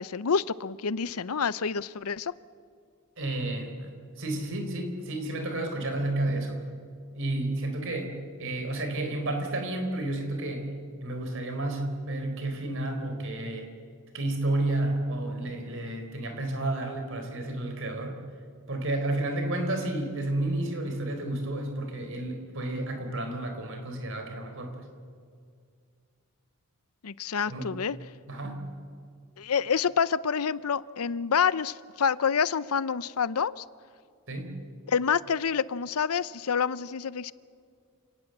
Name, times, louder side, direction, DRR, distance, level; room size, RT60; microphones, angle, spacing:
voice 1, 0.0-2.3 27.0-28.0 29.4-33.6 34.9-37.3, left 6 dB, 80° left, 18 dB, 0.6 m, -27 dB
voice 2, 3.2-3.9 4.1-6.6 7.1-10.7 11.0-13.7 14.1-18.2 18.7-24.8 27.5-27.7 28.3-28.7 34.3-34.6, right 1 dB, 60° right, 5 dB, 4.1 m, -31 dB
28.5 x 18.5 x 7.9 m, 2.2 s
head